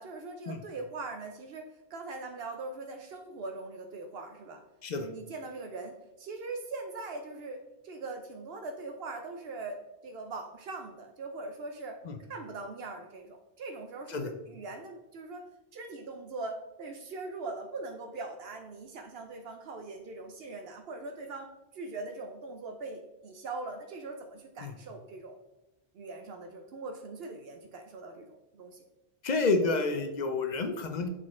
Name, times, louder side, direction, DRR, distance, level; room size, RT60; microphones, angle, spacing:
voice 1, 0.0-4.6 5.0-7.6 7.8-12.0 12.3-15.4 15.7-25.4 25.9-28.8, right 3 dB, 70° right, 5 dB, 0.8 m, -41 dB
voice 2, 29.2-31.1, left 3 dB, 50° left, 7 dB, 0.6 m, -29 dB
6.4 x 4.2 x 3.7 m, 0.96 s
omnidirectional pair, 1.1 m